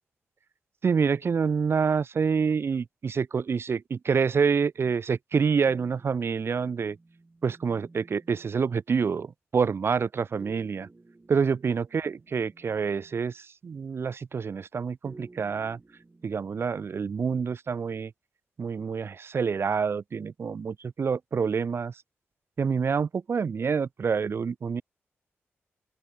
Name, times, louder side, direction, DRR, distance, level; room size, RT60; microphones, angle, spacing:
voice 1, 0.8-7.0 7.4-10.9 11.3-15.8 16.2-18.1 18.6-22.0 22.6-24.8, right 6 dB, 55° right, 1.0 m, -27 dB
sound 1, 5.7-8.8 10.4-13.3 15.0-17.2, right 3 dB, 30° right, 4.7 m, -54 dB
open air
cardioid pair, 65°, 5 cm